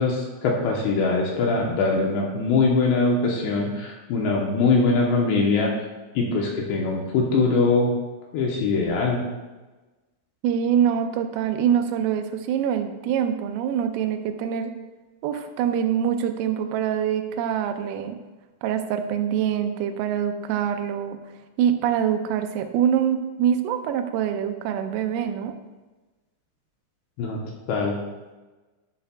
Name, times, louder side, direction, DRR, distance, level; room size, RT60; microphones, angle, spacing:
voice 1, 0.0-5.7 6.1-7.9 8.3-9.2 27.2-27.4 27.7-28.0, left 3 dB, 75° left, -1 dB, 2.7 m, -22 dB
voice 2, 10.4-14.7 15.2-18.2 18.6-21.2 21.6-25.5, right 9 dB, 85° right, 6 dB, 3.3 m, -24 dB
11.0 x 9.9 x 2.3 m, 1.2 s
omnidirectional pair, 6.0 m